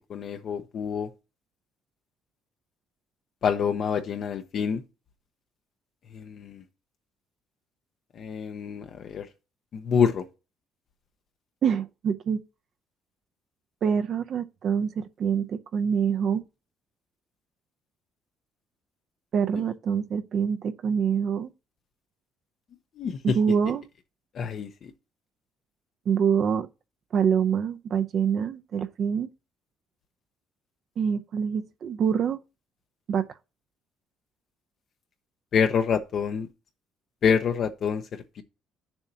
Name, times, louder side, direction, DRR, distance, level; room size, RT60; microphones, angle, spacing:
voice 1, 0.1-1.1 3.4-4.8 6.1-6.6 8.2-9.3 9.7-10.3 23.0-23.4 24.3-24.9 35.5-36.5 37.2-38.0, left 7 dB, 45° left, 0.7 m, -26 dB
voice 2, 11.6-12.4 13.8-16.4 19.3-21.5 23.2-23.8 26.1-26.7 27.1-29.3 31.0-32.4 33.1-33.3, right 7 dB, 45° right, 0.5 m, -25 dB
10.5 x 7.0 x 2.8 m
cardioid pair, 165°, 0 cm